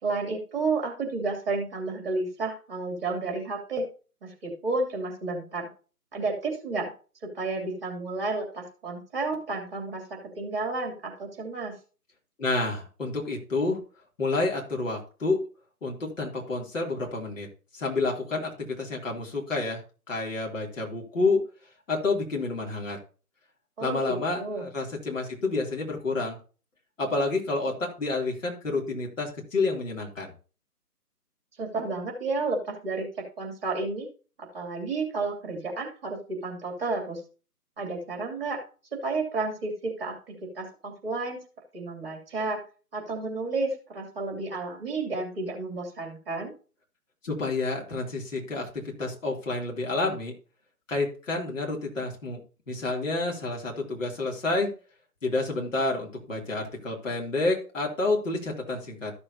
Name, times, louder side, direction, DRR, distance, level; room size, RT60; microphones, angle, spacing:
voice 1, 0.0-3.8 4.2-5.7 6.1-6.9 7.3-10.0 10.4-11.7 23.8-24.7 31.6-33.1 33.4-34.1 34.4-37.2 37.8-38.6 39.0-41.4 41.7-42.6 42.9-46.5, right 3 dB, 40° right, 1 dB, 2.9 m, -31 dB
voice 2, 12.4-13.8 14.2-15.4 15.8-17.5 17.7-19.8 20.1-21.4 21.9-23.0 23.8-26.4 27.0-30.3 47.2-48.7 49.0-50.3 50.9-52.4 52.7-54.7 55.2-59.1, left 3 dB, 55° left, -1 dB, 3.1 m, -29 dB
14.0 x 6.8 x 2.8 m, 0.37 s
figure-of-eight pair, 145°, 47 cm